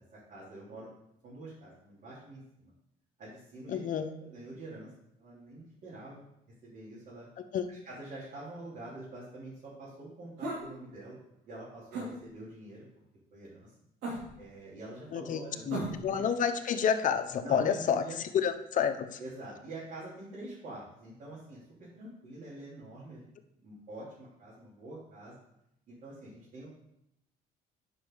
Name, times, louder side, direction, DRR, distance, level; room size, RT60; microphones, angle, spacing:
voice 1, 0.3-0.9 1.2-2.7 3.2-4.9 5.2-6.2 6.6-7.3 7.7-11.2 11.4-12.8 13.3-13.7 14.4-16.2 17.4-18.2 19.2-23.2 23.6-25.4 25.9-26.7, right 2 dB, 55° right, -9 dB, 3.4 m, -46 dB
voice 2, 3.7-4.1 7.5-7.6 15.1-18.0 18.3-19.2, left 7 dB, 50° left, 7 dB, 0.8 m, -29 dB
sound 1, 10.4-10.7 11.9-12.1 14.0-14.4 15.7-16.1, right 2 dB, 85° right, 3.1 m, -36 dB
10.5 x 5.3 x 3.9 m, 0.80 s
cardioid pair, 110°, 17 cm